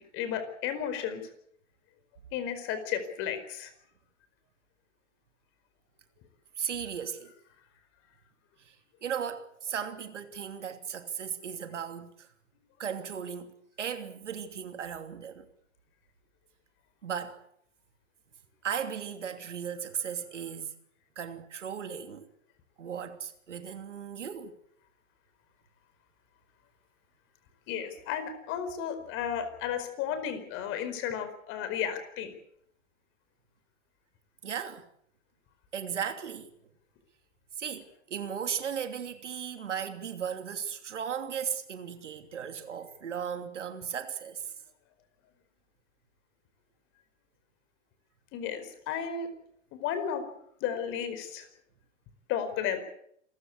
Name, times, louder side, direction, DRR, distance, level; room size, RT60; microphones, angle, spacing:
voice 1, 0.1-1.3 2.3-3.7 27.7-32.3 48.3-49.3 49.7-50.3 50.6-51.5 52.3-52.8, left 8 dB, 35° left, 4.8 m, -33 dB
voice 2, 6.6-7.3 8.6-8.8 9.0-12.3 12.8-15.5 17.0-17.4 18.6-20.7 21.2-22.3 22.8-24.6 34.4-34.9 35.7-36.5 37.6-44.5, right 7 dB, 70° right, 3.0 m, -36 dB
27.5 x 15.0 x 8.6 m
hypercardioid pair, 120°, 37 cm